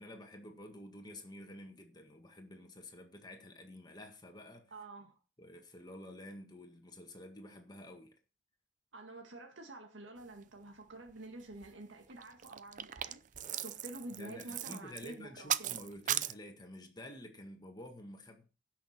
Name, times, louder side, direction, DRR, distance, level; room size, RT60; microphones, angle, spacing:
voice 1, 0.0-4.7 5.4-8.1 13.4-13.5 14.2-18.4, left 1 dB, 20° left, 1.8 m, -50 dB
voice 2, 4.7-5.2 8.9-13.2 13.6-15.8, right 2 dB, 85° right, 1.9 m, -49 dB
sound 1, 11.1-11.2 11.4-11.7 12.1-16.3, right 11 dB, 40° right, 0.5 m, -38 dB
16.0 x 6.3 x 5.7 m
head